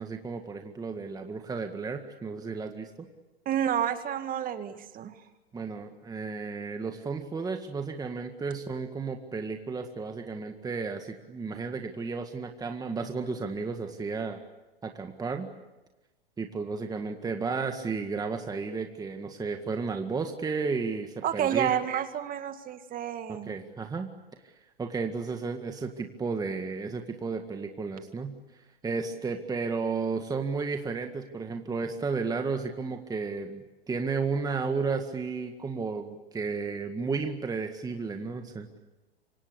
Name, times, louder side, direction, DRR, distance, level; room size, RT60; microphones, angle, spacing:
voice 1, 0.0-3.1 5.5-14.4 14.8-15.5 16.4-21.7 23.3-24.1 24.4-24.5 24.8-28.3 28.8-38.8, right 4 dB, 10° right, 5 dB, 1.9 m, -33 dB
voice 2, 3.5-5.1 21.2-23.5, right 10 dB, 25° right, 9 dB, 2.1 m, -30 dB
26.5 x 25.5 x 8.2 m, 1.1 s
hypercardioid pair, 115°, 31 cm